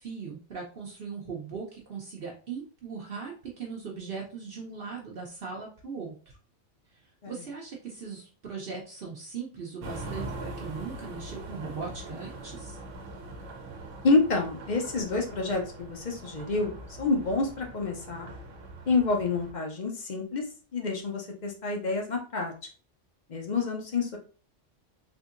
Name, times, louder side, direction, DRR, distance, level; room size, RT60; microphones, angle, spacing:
voice 1, 0.0-6.4 6.9-12.8, right 5 dB, 55° right, -1 dB, 0.8 m, -39 dB
sound 1, 9.8-19.5, right 2 dB, 90° right, 1.0 m, -42 dB
voice 2, 14.0-18.3 18.9-22.5 23.3-24.2, left 3 dB, 45° left, 2 dB, 0.7 m, -28 dB
3.6 x 2.7 x 2.4 m, 0.37 s
omnidirectional pair, 1.2 m